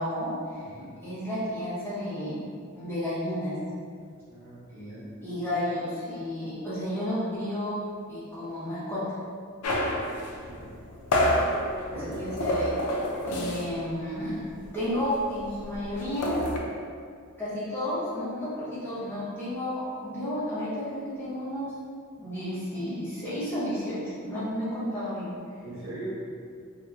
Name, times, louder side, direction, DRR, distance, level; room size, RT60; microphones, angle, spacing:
voice 1, 0.0-0.7 1.0-2.4 2.7-3.5 5.2-7.7 8.1-9.0 12.1-12.7 13.3-16.4 17.4-21.7 22.2-25.3, left 1 dB, 10° left, -12 dB, 0.6 m, -32 dB
voice 2, 0.6-0.9 4.3-5.1 10.5-10.7 11.9-12.2 25.6-26.1, right 1 dB, 45° right, -11 dB, 0.9 m, -40 dB
sound 1, 9.6-13.9 14.2-14.4 14.7-16.6, left 1 dB, 85° left, 0.4 m, -28 dB
2.7 x 2.1 x 2.4 m, 2.2 s
head